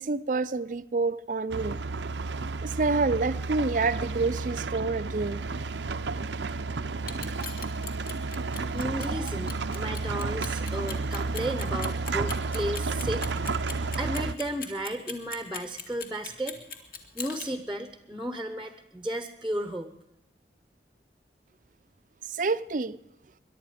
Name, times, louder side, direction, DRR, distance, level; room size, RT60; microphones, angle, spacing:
voice 1, 0.0-1.8 2.6-5.4 9.1-9.3 22.3-23.0, right 3 dB, 45° right, 0.5 m, -28 dB
sound 1, 1.5-14.3, right 3 dB, 90° right, 0.7 m, -31 dB
Clock, 7.0-17.5, left 6 dB, 55° left, 2.1 m, -39 dB
voice 2, 8.4-13.5 14.0-16.6 17.1-19.9, right 1 dB, 5° right, 0.9 m, -34 dB
22.5 x 11.5 x 5.0 m
head